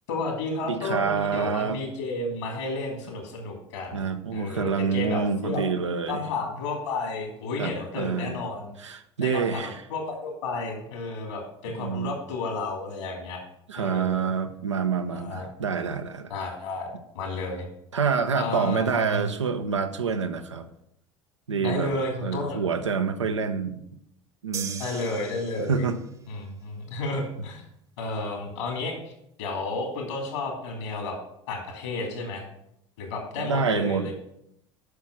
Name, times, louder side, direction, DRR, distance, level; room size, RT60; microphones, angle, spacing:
voice 1, 0.1-4.0 4.3-5.6 6.1-8.7 9.2-13.4 13.8-14.2 15.1-15.4 16.3-16.9 17.1-17.7 18.4-19.3 21.6-22.6 24.8-25.8 26.3-27.6 28.0-29.1 29.4-31.2 31.5-32.5 33.0-34.1, left 3 dB, 70° left, 2 dB, 2.7 m, -32 dB
voice 2, 0.7-1.8 3.9-6.3 7.6-8.4 8.8-9.8 11.7-12.2 13.7-16.3 17.9-20.7 21.5-21.9 22.2-23.8 24.4-24.8 25.6-26.0 33.4-34.1, right 5 dB, 85° right, 7 dB, 0.7 m, -27 dB
sound 1, 24.5-26.1, right 7 dB, 20° right, 0.9 m, -38 dB
8.1 x 6.2 x 6.1 m, 0.77 s
figure-of-eight pair, 70°, 15 cm